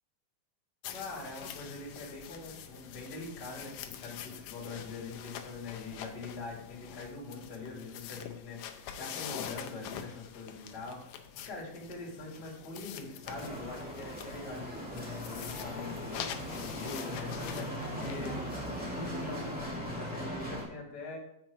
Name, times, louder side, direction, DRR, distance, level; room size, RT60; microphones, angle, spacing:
sound 1, 0.8-19.8, left 9 dB, 80° left, 2.0 m, -45 dB
voice 1, 0.9-8.6 8.9-11.0 11.3-18.4 18.7-21.2, left 3 dB, 30° left, -4 dB, 2.4 m, -43 dB
Bicycle, 13.2-20.6, equal, 15° right, 0.3 m, -39 dB
7.4 x 5.8 x 4.7 m, 0.78 s
omnidirectional pair, 4.3 m